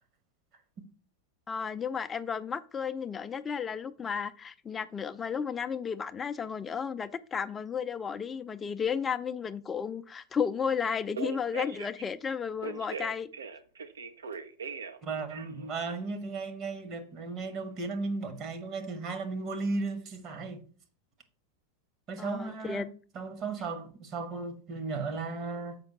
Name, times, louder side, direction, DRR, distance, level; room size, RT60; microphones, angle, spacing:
voice 1, 1.5-13.3 22.2-22.9, left 6 dB, 20° left, 0.4 m, -33 dB
Telephone, 10.9-12.0 12.6-15.0 15.3-15.7, right 5 dB, 70° right, 0.6 m, -40 dB
voice 2, 15.0-20.6 22.1-22.9 23.1-25.8, right 3 dB, 35° right, 1.0 m, -35 dB
6.7 x 5.1 x 3.7 m
figure-of-eight pair, 90°, 0 cm